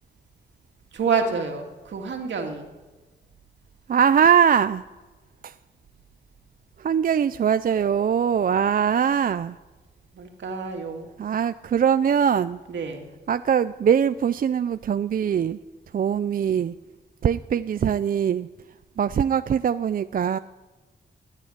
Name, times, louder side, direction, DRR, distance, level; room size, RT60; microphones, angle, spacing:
voice 1, 0.9-2.7 10.1-11.1 12.7-13.1, right 5 dB, 80° right, 2.3 m, -28 dB
voice 2, 3.9-4.8 5.4-5.6 6.8-9.6 11.2-12.6 13.3-15.6 15.9-16.8 17.2-20.4, right 8 dB, 50° right, 0.4 m, -22 dB
14.5 x 9.8 x 10.0 m
wide cardioid pair, 115°, 18 cm